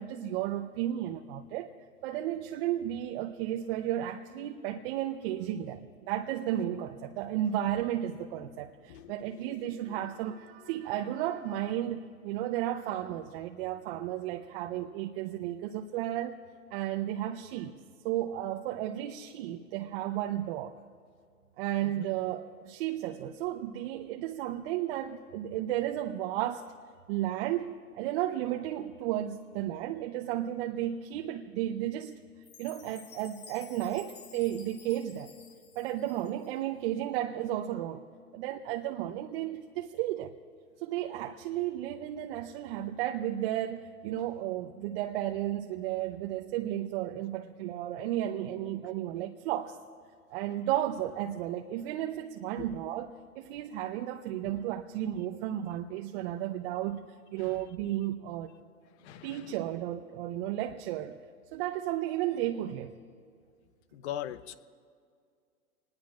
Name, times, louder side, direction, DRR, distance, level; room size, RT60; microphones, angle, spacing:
voice 1, 0.0-1.7 2.0-16.4 16.7-17.7 18.0-20.8 21.6-26.7 27.1-32.2 32.6-35.3 35.7-38.0 38.3-40.3 40.8-49.8 50.3-57.0 57.3-58.5 59.2-61.2 61.5-62.9, right 12 dB, 40° right, 3 dB, 0.9 m, -33 dB
Chime, 32.4-36.6, left 5 dB, 25° left, 1.3 m, -53 dB
voice 2, 59.0-59.5 63.9-64.5, left 11 dB, 50° left, 13 dB, 0.9 m, -40 dB
27.0 x 20.5 x 2.5 m, 2.2 s
hypercardioid pair, 120°, 44 cm